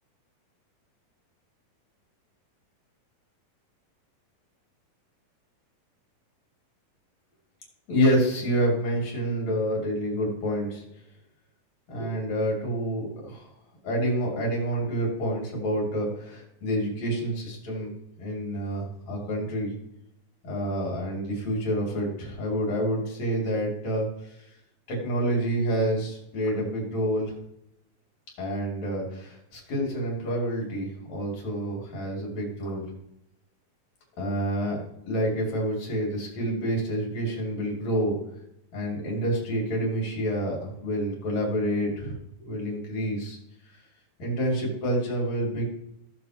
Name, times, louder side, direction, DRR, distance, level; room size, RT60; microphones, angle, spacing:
voice 1, 7.9-10.8 11.9-13.5 13.8-19.7 20.4-24.3 24.9-27.3 28.4-32.9 34.2-34.8 35.1-38.2 38.7-42.1 42.4-43.4 44.2-45.6, equal, 50° left, -2 dB, 4.1 m, -28 dB
15.5 x 7.5 x 3.0 m, 0.78 s
omnidirectional pair, 4.2 m